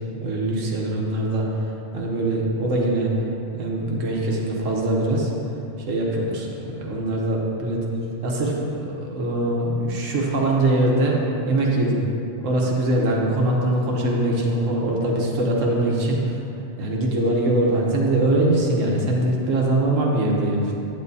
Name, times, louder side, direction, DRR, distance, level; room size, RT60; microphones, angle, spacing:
voice 1, 0.2-1.5 1.9-3.1 3.6-5.3 5.9-7.9 8.2-11.2 11.4-12.0 12.4-16.3 16.8-20.7, right 1 dB, 85° right, -2 dB, 1.4 m, -22 dB
8.9 x 8.4 x 2.7 m, 2.7 s
omnidirectional pair, 1.3 m